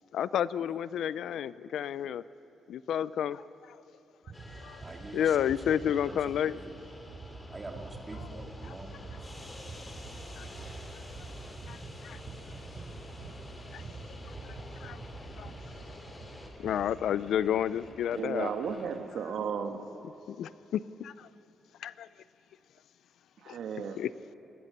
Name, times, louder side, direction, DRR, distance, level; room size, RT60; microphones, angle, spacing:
voice 1, 0.1-2.2 2.7-3.4 4.6-4.8 5.1-6.6 8.2-8.3 8.6-8.8 10.4-10.5 11.7-11.8 12.0-12.2 13.7-13.8 14.8-15.0 15.4-15.5 16.6-18.5 20.3-21.1 21.8-22.1 23.5-23.6 24.0-24.1, left 9 dB, 80° left, 17 dB, 0.5 m, -30 dB
sound 1, 4.2-16.9, right 3 dB, 50° right, 5.7 m, -46 dB
sound 2, 4.3-16.5, left 1 dB, 20° left, 3.0 m, -50 dB
voice 2, 4.8-5.8 6.1-6.2 6.5-6.7 7.5-9.0, right 2 dB, 20° right, 3 dB, 2.5 m, -45 dB
sound 3, 8.9-19.0, left 2 dB, 40° left, 3.2 m, -53 dB
voice 3, 18.1-19.8 23.4-24.0, right 6 dB, 75° right, 7 dB, 1.6 m, -34 dB
28.5 x 20.5 x 6.8 m, 2.8 s
cardioid pair, 145°, 0 cm